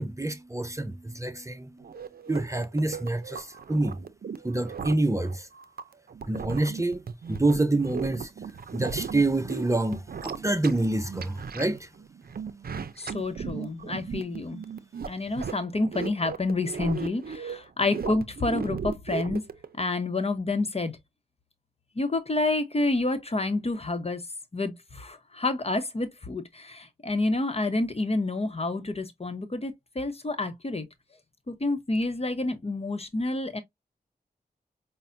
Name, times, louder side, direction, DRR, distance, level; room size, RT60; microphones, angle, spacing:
voice 1, 0.0-1.8 2.3-4.0 4.4-5.5 6.3-7.0 7.3-8.3 8.7-11.9, right 2 dB, 20° right, 0.6 m, -27 dB
sound 1, 1.8-19.8, right 6 dB, 65° right, 0.5 m, -37 dB
voice 2, 13.0-14.6 15.1-19.5 19.8-21.0 22.0-24.2 24.5-30.9 31.5-33.6, left 2 dB, 40° left, 0.9 m, -29 dB
5.4 x 2.2 x 2.6 m
cardioid pair, 45°, 17 cm